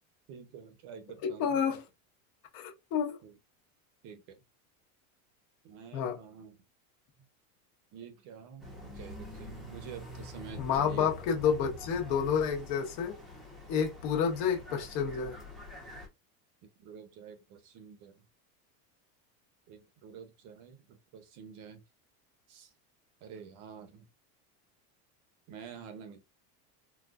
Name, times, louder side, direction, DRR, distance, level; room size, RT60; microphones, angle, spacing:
voice 1, 0.3-1.6 3.2-3.3 4.0-4.4 5.6-6.6 7.9-11.2 16.8-18.2 19.7-21.8 22.5-22.7 23.2-24.0 25.5-26.2, right 7 dB, 45° right, 0.8 m, -48 dB
voice 2, 1.2-1.8 2.5-3.2 5.9-6.2 10.6-13.1 13.7-15.4, left 7 dB, 45° left, 0.9 m, -30 dB
sound 1, 8.6-16.1, left 2 dB, ahead, 0.7 m, -46 dB
3.9 x 2.2 x 2.4 m
supercardioid pair, 150°, 44 cm